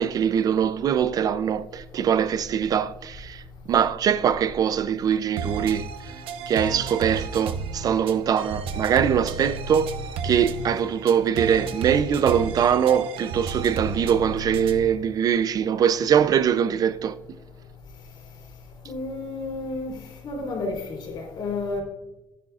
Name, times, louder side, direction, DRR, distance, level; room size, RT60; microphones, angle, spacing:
voice 1, 0.0-3.4 3.7-6.1 6.5-9.9 10.2-17.2, right 8 dB, 45° right, 0.4 m, -22 dB
sound 1, 5.4-15.0, right 4 dB, 85° right, 0.9 m, -33 dB
voice 2, 18.8-19.9 20.2-21.8, left 3 dB, 55° left, 4.0 m, -31 dB
13.0 x 10.5 x 2.4 m
cardioid pair, 160°, 9 cm